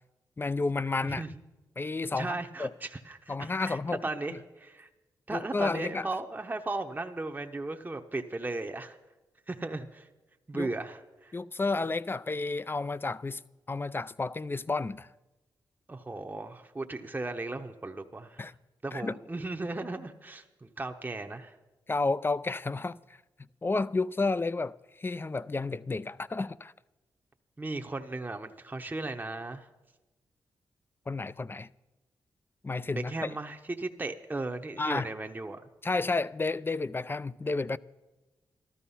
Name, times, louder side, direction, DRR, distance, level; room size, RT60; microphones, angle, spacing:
voice 1, 0.4-1.2 1.8-2.7 3.3-4.0 4.3-4.4 5.3-6.1 10.5-10.7 11.3-13.4 13.7-15.1 18.4-18.5 18.9-19.2 21.9-23.0 23.6-26.7 31.1-31.7 32.6-33.3 34.8-35.1 35.8-37.8, left 3 dB, 25° left, 0.4 m, -31 dB
voice 2, 2.1-4.9 5.3-9.0 9.5-10.1 10.5-11.3 15.9-18.5 18.8-21.5 27.6-29.7 32.9-35.6, right 2 dB, 20° right, 0.8 m, -36 dB
13.5 x 12.5 x 5.6 m
cardioid pair, 50°, 8 cm